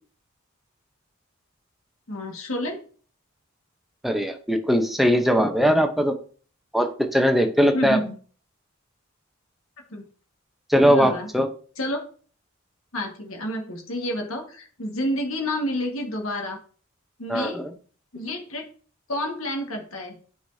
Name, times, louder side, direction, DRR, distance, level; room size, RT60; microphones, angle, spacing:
voice 1, 2.1-2.8 7.7-8.2 9.9-10.0 10.8-11.3 11.8-12.0 12.9-16.6 17.2-17.6 18.1-18.6 19.1-20.2, left 1 dB, 80° left, 2 dB, 1.8 m, -29 dB
voice 2, 4.0-6.1 6.7-8.0 10.7-11.5 17.3-17.7, equal, ahead, 4 dB, 0.8 m, -20 dB
9.6 x 4.8 x 2.8 m, 0.41 s
head